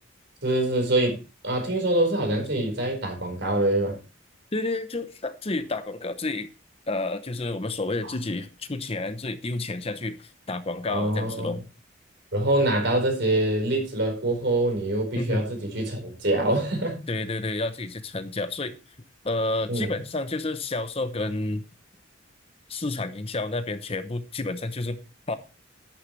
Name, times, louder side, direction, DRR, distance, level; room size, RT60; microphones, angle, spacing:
voice 1, 0.4-4.0 10.9-11.5 12.3-17.0 19.7-19.9, right 1 dB, 60° right, 3 dB, 4.7 m, -25 dB
voice 2, 4.5-6.5 6.9-11.6 15.1-15.4 17.1-18.7 19.2-21.6 22.7-25.0 25.3-25.4, left 2 dB, 30° left, 11 dB, 0.8 m, -30 dB
11.0 x 10.5 x 3.3 m, 0.29 s
head